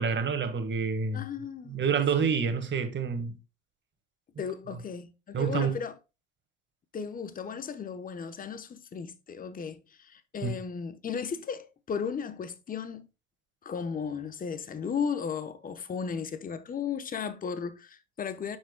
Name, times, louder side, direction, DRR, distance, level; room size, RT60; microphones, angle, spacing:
voice 1, 0.0-1.2 1.7-3.4 5.3-5.7 10.4-10.5, right 6 dB, 30° right, 1.7 m, -28 dB
voice 2, 1.1-1.9 4.4-6.0 6.9-13.1 13.6-18.6, left 6 dB, 25° left, 0.9 m, -35 dB
9.4 x 6.1 x 2.2 m
supercardioid pair, 95°, 35 cm